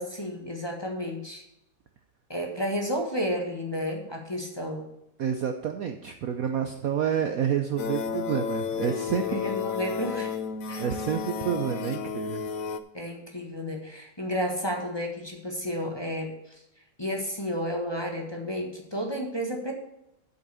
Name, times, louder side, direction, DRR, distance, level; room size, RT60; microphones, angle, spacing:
voice 1, 0.0-1.4 2.3-4.9 9.3-10.3 10.7-10.9 12.9-16.3 17.0-19.7, equal, 15° left, 1 dB, 1.4 m, -31 dB
voice 2, 5.2-9.6 10.8-12.5, right 8 dB, 60° right, 7 dB, 1.0 m, -29 dB
sound 1, 7.8-12.8, left 6 dB, 60° left, 0.9 m, -32 dB
7.9 x 6.8 x 6.9 m, 0.84 s
omnidirectional pair, 2.0 m